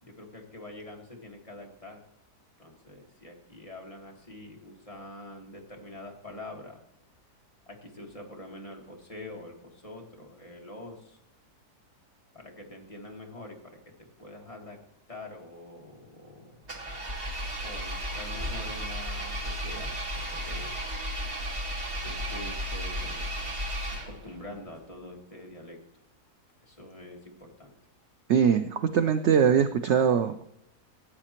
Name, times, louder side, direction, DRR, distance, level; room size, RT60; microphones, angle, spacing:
voice 1, 0.0-2.0 2.6-6.8 7.7-11.2 12.3-14.8 15.1-16.6 17.6-20.8 22.0-23.5 23.9-25.8 26.6-27.7, left 1 dB, 20° left, 0 dB, 1.6 m, -45 dB
Engine, 16.6-24.4, equal, 35° right, 1.7 m, -34 dB
voice 2, 28.3-30.4, right 7 dB, 65° right, 10 dB, 0.7 m, -22 dB
15.5 x 8.8 x 2.9 m, 0.80 s
omnidirectional pair, 1.7 m